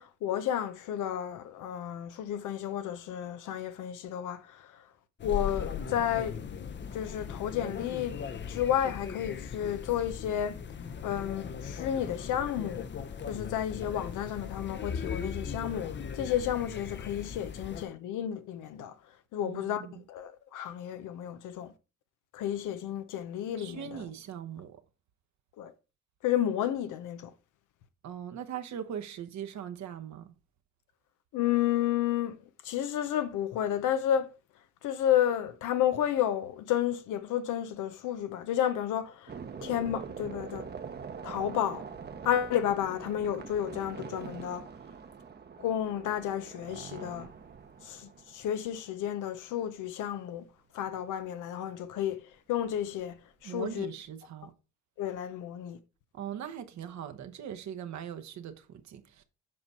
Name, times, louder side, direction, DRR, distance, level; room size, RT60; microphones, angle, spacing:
voice 1, 0.0-4.9 5.2-6.3 6.9-8.2 8.5-10.6 11.0-12.9 13.3-18.9 19.3-19.8 20.1-21.7 22.3-24.1 25.6-25.7 26.2-27.3 31.3-32.4 32.6-34.3 34.8-39.3 39.6-40.7 41.2-41.9 42.2-44.7 45.6-47.3 47.8-50.4 50.7-52.2 52.5-53.9 55.0-55.8, left 10 dB, 85° left, 0.7 m, -31 dB
sound 1, 5.2-17.9, left 6 dB, 40° left, 0.7 m, -38 dB
voice 2, 19.4-20.0 23.6-24.8 28.0-30.3 53.4-54.5 56.1-59.2, right 9 dB, 65° right, 1.0 m, -40 dB
sound 2, 39.3-49.2 51.0-51.1 51.3-51.4 52.6-53.1, right 6 dB, 35° right, 0.8 m, -44 dB
7.7 x 5.2 x 4.3 m
cardioid pair, 90°, 30 cm